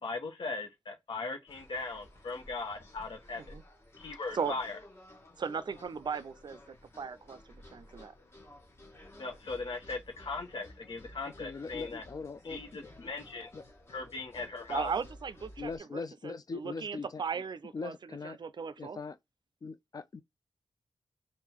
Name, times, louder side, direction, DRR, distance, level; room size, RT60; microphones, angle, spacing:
voice 1, 0.0-3.4 4.0-4.8 9.2-12.0 12.4-13.5 13.9-14.9, left 3 dB, 65° left, 1.2 m, -39 dB
sound 1, 1.5-15.8, left 1 dB, 30° left, 1.1 m, -54 dB
voice 2, 5.4-8.1 14.7-19.0, right 6 dB, 55° right, 0.4 m, -37 dB
voice 3, 11.2-13.1 13.5-13.6 15.6-17.4 17.7-18.4 18.8-19.2 19.6-20.2, left 4 dB, 45° left, 0.5 m, -41 dB
3.7 x 2.5 x 4.5 m
wide cardioid pair, 125°, 9 cm